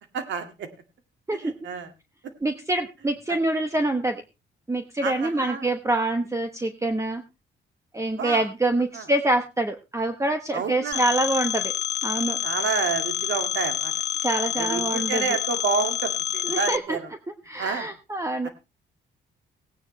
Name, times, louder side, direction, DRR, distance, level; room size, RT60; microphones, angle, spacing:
voice 1, 0.1-0.7 1.3-1.9 3.3-3.4 5.0-5.7 8.2-8.4 8.9-9.1 10.5-11.0 12.4-13.9 14.5-17.1 17.6-17.9 18.4-18.5, right 6 dB, 70° right, 8 dB, 2.1 m, -29 dB
voice 2, 2.4-4.2 4.7-7.2 7.9-11.7 12.0-12.4 14.2-15.2 16.4-17.0 17.5-18.5, right 2 dB, 15° right, 7 dB, 1.0 m, -25 dB
Telephone, 10.9-16.8, left 11 dB, 60° left, 0.6 m, -28 dB
17.0 x 9.4 x 3.2 m, 0.26 s
cardioid pair, 90°, 20 cm